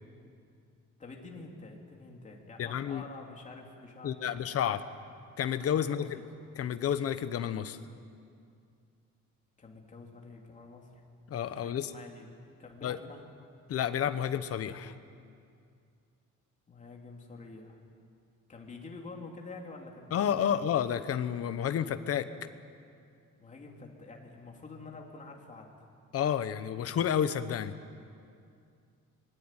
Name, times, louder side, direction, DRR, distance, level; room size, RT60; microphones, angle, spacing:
voice 1, 1.0-4.4 4.7-4.8 5.8-6.1 9.6-11.0 11.5-12.3 12.6-13.3 16.7-17.8 18.5-20.6 23.4-25.7, left 3 dB, 25° left, 0 dB, 3.1 m, -47 dB
voice 2, 2.6-3.0 4.0-4.8 5.4-6.2 6.5-7.8 11.3-11.9 12.8-13.0 13.7-14.9 20.1-22.3 26.1-27.7, left 9 dB, 50° left, 11 dB, 1.1 m, -30 dB
25.5 x 21.5 x 9.1 m, 2.3 s
cardioid pair, 180°, 30 cm